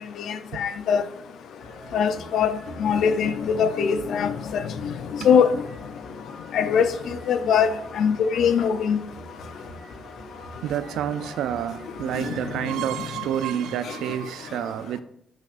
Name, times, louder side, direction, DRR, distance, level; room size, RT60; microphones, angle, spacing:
voice 1, 0.2-1.0 1.9-4.9 5.2-5.6 6.5-9.0 12.2-12.4, left 7 dB, 70° left, 0.6 m, -22 dB
sound 1, 1.6-12.7, equal, 45° left, 2.1 m, -44 dB
voice 2, 10.6-15.0, right 10 dB, 85° right, 0.5 m, -29 dB
7.2 x 6.0 x 2.6 m
cardioid pair, 90°, 0 cm